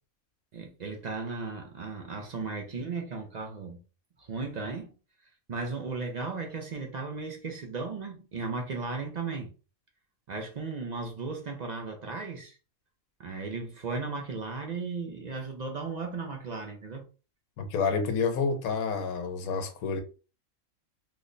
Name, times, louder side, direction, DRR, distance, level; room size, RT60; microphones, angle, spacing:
voice 1, 0.5-3.8 4.2-4.9 5.5-9.5 10.3-12.6 13.2-17.1, right 4 dB, 60° right, 0.4 m, -36 dB
voice 2, 17.6-20.0, left 5 dB, 85° left, 1.1 m, -29 dB
3.2 x 2.1 x 3.8 m
omnidirectional pair, 1.5 m